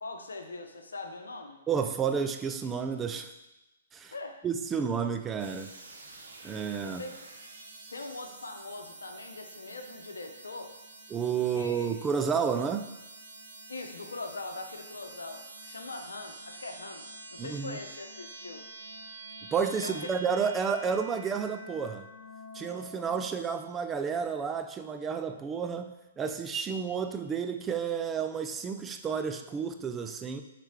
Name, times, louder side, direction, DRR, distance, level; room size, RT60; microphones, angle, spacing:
voice 1, 0.0-1.6 4.1-4.4 4.7-4.8 6.8-7.1 7.9-10.8 11.5-11.9 13.7-17.0 17.3-18.7 19.8-20.1, left 3 dB, 85° left, 4 dB, 0.8 m, -41 dB
voice 2, 1.7-3.3 3.9-4.1 4.4-5.7 6.4-7.1 11.1-12.9 17.4-17.8 19.4-22.0 22.5-30.4, right 6 dB, 15° right, 7 dB, 0.4 m, -31 dB
sound 1, 5.4-23.2, right 2 dB, 75° right, 1.0 m, -47 dB
6.3 x 3.3 x 5.0 m, 0.96 s
hypercardioid pair, 125°, 0 cm